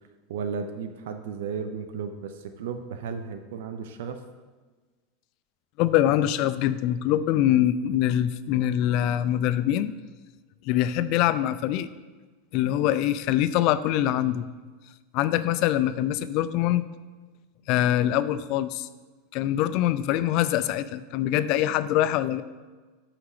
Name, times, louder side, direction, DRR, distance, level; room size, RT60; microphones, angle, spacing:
voice 1, 0.3-4.2, right 6 dB, 75° right, 8 dB, 0.6 m, -34 dB
voice 2, 5.8-9.9 10.6-11.9 12.5-14.5 15.1-16.9 17.7-18.9 19.3-22.4, left 12 dB, 45° left, 14 dB, 0.4 m, -24 dB
6.8 x 5.8 x 4.9 m, 1.3 s
supercardioid pair, 145°, 0 cm